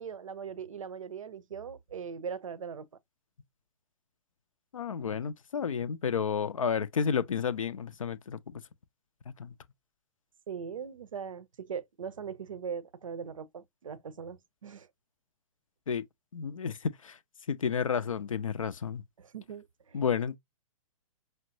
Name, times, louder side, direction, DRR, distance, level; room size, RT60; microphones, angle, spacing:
voice 1, 0.0-2.9 10.5-14.9 19.2-20.1, right 6 dB, 65° right, 0.6 m, -40 dB
voice 2, 4.7-8.6 9.4-9.5 15.9-16.0 16.3-17.2 17.5-19.0 19.9-20.4, left 6 dB, 65° left, 0.5 m, -31 dB
5.7 x 2.0 x 2.6 m
figure-of-eight pair, 120°, 18 cm